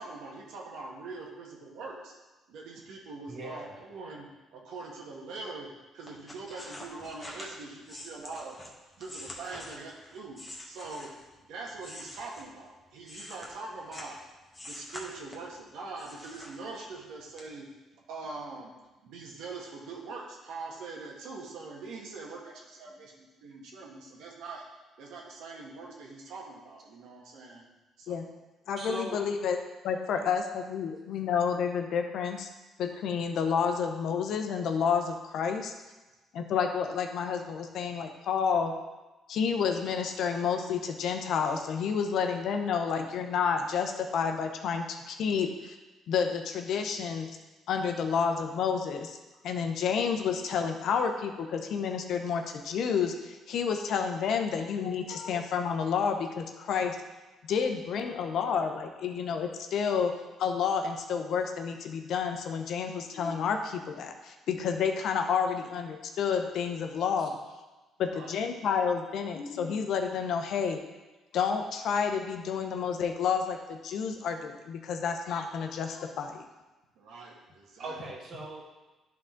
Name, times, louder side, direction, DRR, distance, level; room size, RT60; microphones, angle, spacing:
voice 1, 0.0-2.1 2.5-5.7 5.9-8.5 9.0-10.4 10.6-11.1 11.5-14.2 14.6-17.7 18.1-18.7 19.0-24.6 25.0-27.7 28.0-28.3 55.1-55.2 68.1-68.4 76.9-78.0, right 3 dB, 80° right, -1 dB, 1.5 m, -43 dB
voice 2, 3.3-3.7 28.8-29.2 67.2-67.3 77.8-78.6, right 2 dB, 50° right, -3 dB, 1.9 m, -39 dB
sound 1, 6.1-11.3 11.8-14.2 14.5-15.6 16.0-17.0 17.4-17.5, left 1 dB, 15° left, 1.5 m, -46 dB
voice 3, 28.7-29.6 29.8-32.5 32.8-35.7 36.3-38.7 39.3-45.8 46.1-47.3 47.7-49.2 49.4-57.0 57.5-60.1 60.4-67.4 68.0-70.8 71.3-76.5, left 6 dB, 70° left, 5 dB, 0.8 m, -30 dB
10.5 x 3.9 x 3.8 m, 1.1 s
cardioid pair, 90°, 0 cm